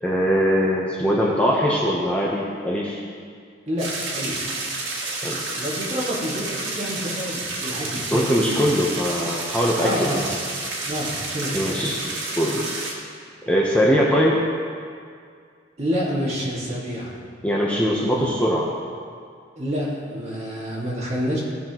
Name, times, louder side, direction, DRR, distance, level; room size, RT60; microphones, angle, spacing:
voice 1, 0.0-3.0 5.2-5.4 8.1-10.1 11.5-12.6 13.5-14.4 17.4-18.7, equal, 5° left, -4 dB, 0.8 m, -21 dB
voice 2, 3.7-4.4 5.6-8.1 8.5-8.6 9.8-10.3 10.8-11.7 15.8-17.2 18.0-18.3 19.6-21.4, equal, 35° right, -5 dB, 2.0 m, -28 dB
sound 1, 3.8-12.9, right 2 dB, 85° right, 1.6 m, -30 dB
16.0 x 5.8 x 3.0 m, 2.2 s
head